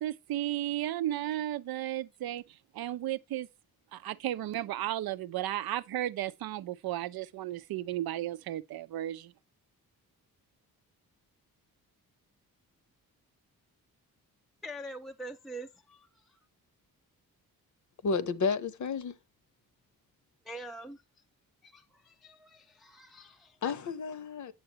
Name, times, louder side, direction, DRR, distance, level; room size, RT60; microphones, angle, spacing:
voice 1, 0.0-2.4 2.7-3.5 3.9-9.3, right 13 dB, 85° right, 0.6 m, -34 dB
voice 2, 14.6-16.4 20.5-21.0 21.6-23.6, right 1 dB, ahead, 0.4 m, -45 dB
voice 3, 18.0-19.1 23.6-24.5, left 5 dB, 55° left, 0.8 m, -31 dB
8.7 x 6.8 x 2.8 m
cardioid pair, 95°, 36 cm